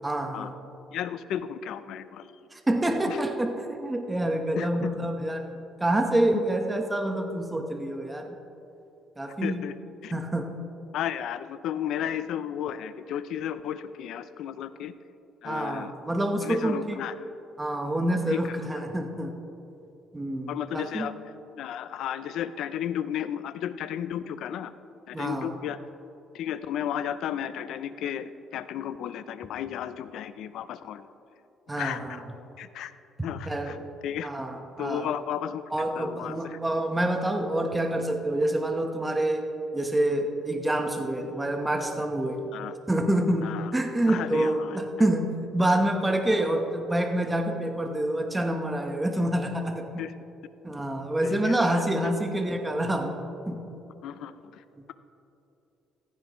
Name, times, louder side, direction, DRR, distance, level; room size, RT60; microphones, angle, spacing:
voice 1, 0.0-0.6 2.5-8.4 9.2-9.6 10.1-10.5 15.4-17.0 17.6-19.3 20.1-21.1 25.1-25.5 31.7-32.2 33.5-33.8 34.2-35.1 35.7-39.5 39.7-42.5 42.9-50.0 50.6-53.6, right 1 dB, 15° right, 4 dB, 1.1 m, -27 dB
voice 2, 0.9-2.3 3.1-3.2 4.6-4.9 6.3-6.4 9.4-9.8 10.0-10.2 10.9-14.9 15.4-15.9 16.4-17.1 18.3-18.4 20.5-21.1 21.6-24.7 25.1-25.8 26.3-31.1 31.8-32.0 32.6-32.9 33.2-33.8 34.0-34.3 34.8-35.6 36.0-36.6 42.5-42.7 43.4-43.7 44.1-44.8 50.0-50.1 51.2-52.1 54.0-54.6, left 10 dB, 75° left, 13 dB, 0.5 m, -33 dB
15.5 x 15.0 x 3.1 m, 2.9 s
cardioid pair, 110°, 0 cm